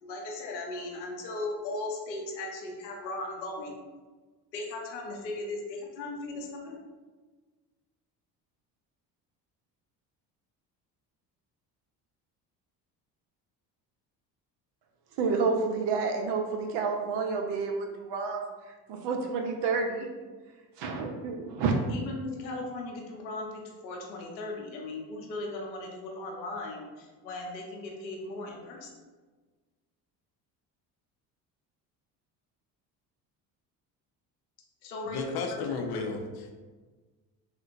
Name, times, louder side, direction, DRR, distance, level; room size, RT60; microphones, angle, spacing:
voice 1, 0.0-3.8 4.5-6.8 21.7-28.9 34.8-35.2 35.5-35.6 35.9-36.1, left 2 dB, 85° left, 1 dB, 0.7 m, -37 dB
voice 2, 15.2-18.4 18.9-20.1 20.8-21.7, right 4 dB, 55° right, 3 dB, 0.6 m, -29 dB
voice 3, 35.0-36.5, left 4 dB, 50° left, 4 dB, 0.5 m, -34 dB
3.6 x 2.1 x 2.6 m, 1.3 s
hypercardioid pair, 55°, 50 cm